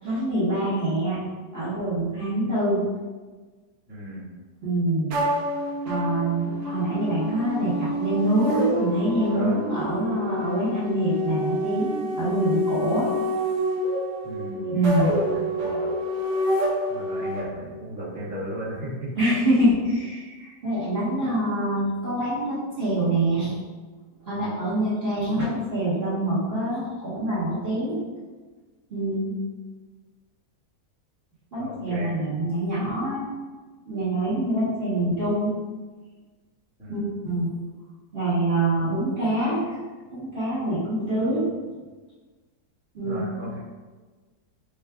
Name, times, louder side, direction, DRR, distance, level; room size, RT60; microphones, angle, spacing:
voice 1, 0.0-1.2 1.5-2.8 4.6-5.2 5.8-13.1 14.6-15.1 19.2-23.5 24.3-28.0 28.9-29.3 31.5-33.3 33.8-35.5 36.9-37.5 38.1-39.8 40.1-41.5 42.9-43.2, right 1 dB, 40° right, -11 dB, 1.0 m, -25 dB
voice 2, 3.9-4.3 9.3-9.6 14.2-15.9 16.9-19.1 24.3-24.6 31.6-32.2 36.8-37.1 38.8-38.9 43.0-43.6, equal, 5° right, -10 dB, 0.8 m, -36 dB
sound 1, 5.1-17.4, equal, 75° right, 1.4 m, -28 dB
4.6 x 2.3 x 3.3 m, 1.3 s
omnidirectional pair, 2.0 m